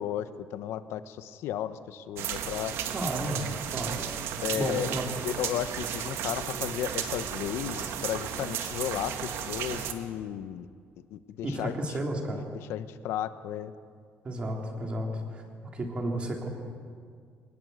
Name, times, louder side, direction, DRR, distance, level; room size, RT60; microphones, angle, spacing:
voice 1, 0.0-2.8 4.4-4.9 5.2-10.7 11.1-11.8 12.3-13.7, left 11 dB, 80° left, 12 dB, 1.1 m, -34 dB
sound 1, 2.2-9.9, right 9 dB, 75° right, 2.0 m, -34 dB
sound 2, 2.7-10.0, right 1 dB, 50° right, 5.9 m, -50 dB
voice 2, 2.9-4.0 4.6-5.1 11.4-12.5 14.2-15.4 15.7-16.5, right 1 dB, 25° right, 2 dB, 3.3 m, -32 dB
24.0 x 20.0 x 8.1 m, 2.1 s
cardioid pair, 170°, 4 cm